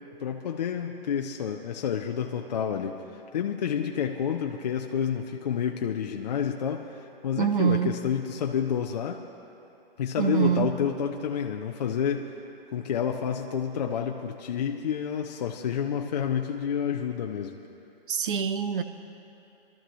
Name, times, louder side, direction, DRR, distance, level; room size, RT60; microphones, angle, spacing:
voice 1, 0.2-9.2 10.0-12.3 12.7-17.6, left 8 dB, 45° left, 3 dB, 0.6 m, -29 dB
voice 2, 7.4-8.0 10.2-10.7 18.1-18.8, right 7 dB, 60° right, 10 dB, 0.8 m, -25 dB
24.0 x 13.0 x 3.1 m, 2.9 s
hypercardioid pair, 165°, 29 cm